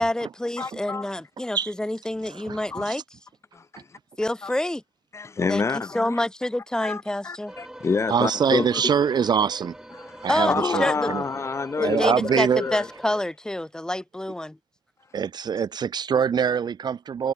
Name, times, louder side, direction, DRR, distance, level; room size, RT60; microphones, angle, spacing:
voice 1, 0.0-3.0 4.2-4.8 5.5-5.7 5.9-7.5 10.3-11.1 11.8-14.6, left 1 dB, 10° left, 3.4 m, -27 dB
voice 2, 0.6-1.1 2.7-2.8 3.5-4.0 4.4-4.5 5.1-6.2 6.8-8.8 9.9-12.9, left 4 dB, 40° left, 1.6 m, -28 dB
voice 3, 2.2-3.0 8.1-9.8 10.2-11.2 11.8-12.6 15.1-17.3, right 7 dB, 85° right, 4.3 m, -24 dB
sound 1, 7.5-13.2, right 1 dB, 10° right, 5.3 m, -43 dB
wide cardioid pair, 140°, 7 cm